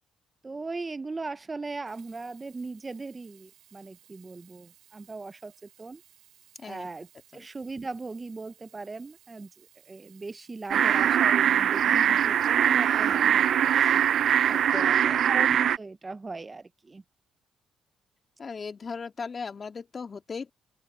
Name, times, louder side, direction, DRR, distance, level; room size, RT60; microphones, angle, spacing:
voice 1, 0.4-6.0 6.6-7.1 7.3-9.5 9.9-14.1 14.8-17.0, right 3 dB, 25° right, 0.7 m, -39 dB
Sink (filling or washing), 1.7-15.5 16.2-16.3, right 12 dB, 80° right, 5.4 m, -60 dB
voice 2, 6.6-6.9 7.3-7.5 11.8-12.4 14.5-15.3 18.4-20.5, left 5 dB, 40° left, 2.3 m, -38 dB
sound 1, 10.7-15.8, right 9 dB, 65° right, 0.4 m, -22 dB
open air
cardioid pair, 90°, 0 cm